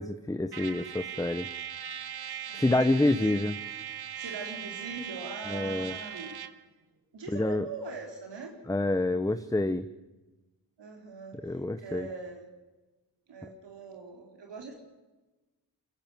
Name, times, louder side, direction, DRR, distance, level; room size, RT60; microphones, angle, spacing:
voice 1, 0.0-1.5 2.5-3.6 5.5-5.9 7.3-7.6 8.7-9.9 11.4-12.1, left 2 dB, 10° left, 10 dB, 1.0 m, -27 dB
Trumpet, 0.5-6.6, right 9 dB, 65° right, 1.1 m, -39 dB
voice 2, 2.5-3.5 4.2-6.4 7.1-8.5 10.8-12.5 13.3-14.8, right 4 dB, 85° right, 2 dB, 4.4 m, -42 dB
23.5 x 15.5 x 9.3 m, 1.1 s
cardioid pair, 65°, 42 cm